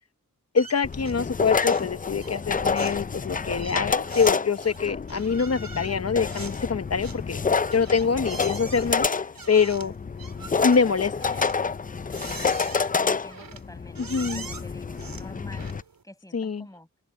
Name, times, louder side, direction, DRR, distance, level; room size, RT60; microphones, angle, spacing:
voice 1, 0.5-7.4 7.7-9.1 9.5-9.9 10.6-11.5 14.0-14.4 16.3-16.7, left 5 dB, 50° left, 0.9 m, -25 dB
sound 1, 0.6-1.3 1.6-1.9 2.2-16.0, right 5 dB, 90° right, 3.7 m, -43 dB
sound 2, 0.8-15.8, left 5 dB, 25° left, 0.4 m, -28 dB
voice 2, 12.1-12.7 13.0-15.7 16.0-16.9, left 1 dB, 10° left, 6.1 m, -48 dB
wide cardioid pair, 85°, 33 cm